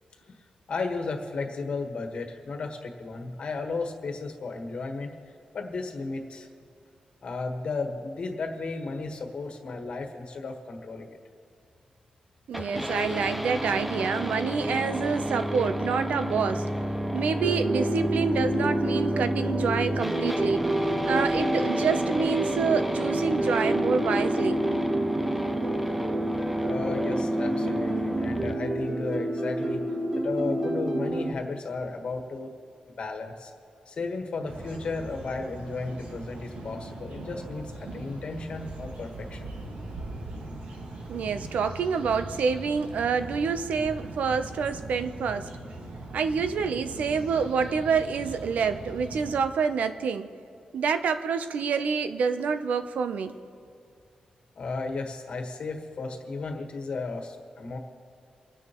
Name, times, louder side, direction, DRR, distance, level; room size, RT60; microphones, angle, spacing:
voice 1, 0.7-5.2 5.5-6.5 7.2-11.1 26.6-29.8 30.1-32.5 33.0-33.5 33.9-39.5 54.5-57.8, left 3 dB, 50° left, 3 dB, 1.5 m, -34 dB
sound 1, 12.5-28.5, equal, 5° right, 0.5 m, -31 dB
voice 2, 12.5-16.7 17.1-20.8 21.1-24.6 41.1-45.5 46.1-50.3 50.7-53.3, right 6 dB, 85° right, 10 dB, 0.7 m, -27 dB
sound 2, 17.4-31.3, right 1 dB, 35° right, 1.2 m, -29 dB
sound 3, 34.4-49.4, right 2 dB, 65° right, 1.7 m, -40 dB
29.0 x 9.8 x 3.1 m, 2.5 s
wide cardioid pair, 180°, 2 cm